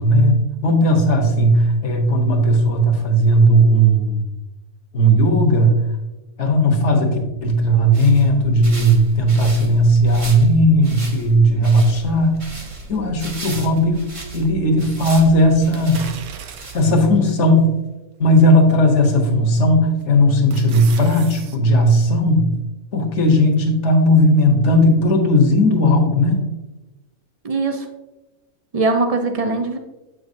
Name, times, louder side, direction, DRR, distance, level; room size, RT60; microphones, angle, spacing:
voice 1, 0.0-4.2 4.9-5.8 6.4-12.4 12.9-16.1 16.7-17.7 18.2-22.5 22.9-26.5, equal, 55° left, 3 dB, 1.3 m, -16 dB
sound 1, 7.7-17.2, right 3 dB, 25° right, 0.9 m, -36 dB
sound 2, 15.7-17.0 17.6-17.7 19.2-19.6 20.0-21.6 21.9-22.0, right 7 dB, 85° right, 1.2 m, -38 dB
voice 2, 27.4-27.9 28.7-29.8, right 3 dB, 60° right, 5 dB, 0.4 m, -20 dB
7.8 x 6.2 x 2.6 m, 1.0 s
omnidirectional pair, 1.5 m